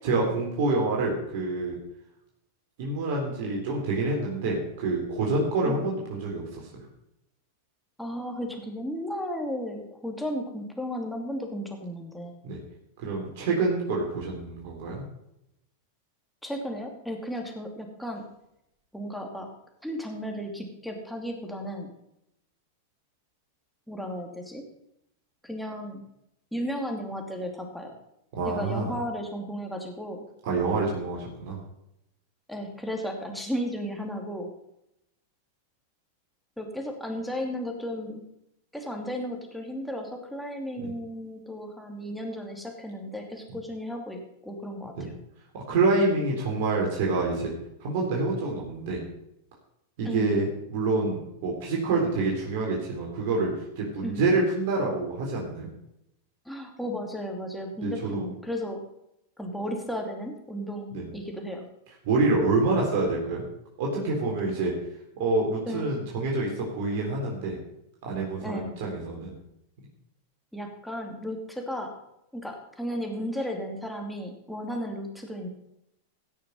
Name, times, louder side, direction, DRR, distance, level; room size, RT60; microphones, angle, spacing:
voice 1, 0.0-1.8 2.8-6.6 12.4-12.6 13.0-15.0 28.4-28.9 30.4-31.6 40.8-40.9 45.0-45.1 45.7-47.5 47.8-49.0 50.0-53.5 53.8-55.7 57.8-58.2 60.9-61.1 62.0-63.4 63.8-64.7 65.2-67.6 68.0-69.3, right 3 dB, 60° right, -2 dB, 3.8 m, -27 dB
voice 2, 8.0-12.3 16.4-18.2 18.9-19.5 19.8-21.9 23.9-24.6 25.4-26.0 26.5-27.9 28.5-30.3 32.5-34.5 36.6-38.2 38.7-45.1 50.0-50.3 54.0-54.2 56.4-58.8 59.4-61.7 65.7-65.9 68.4-68.7 70.5-71.9 72.3-75.5, equal, ahead, 1 dB, 2.7 m, -34 dB
16.5 x 6.6 x 5.5 m, 0.83 s
hypercardioid pair, 105°, 0 cm